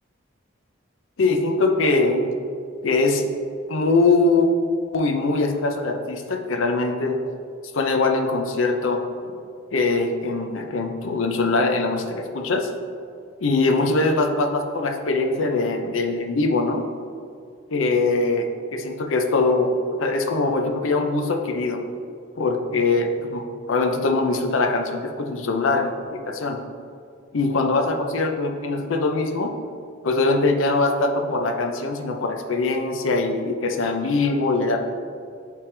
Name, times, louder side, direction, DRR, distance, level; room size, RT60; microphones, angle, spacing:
voice 1, 1.2-2.3 2.8-3.3 3.7-4.5 4.9-7.2 7.7-9.4 9.7-12.7 13.4-16.9 17.7-21.8 22.4-26.6 27.3-29.5 30.0-34.9, left 3 dB, 80° left, 4 dB, 0.6 m, -22 dB
9.8 x 3.4 x 3.3 m, 2.3 s
head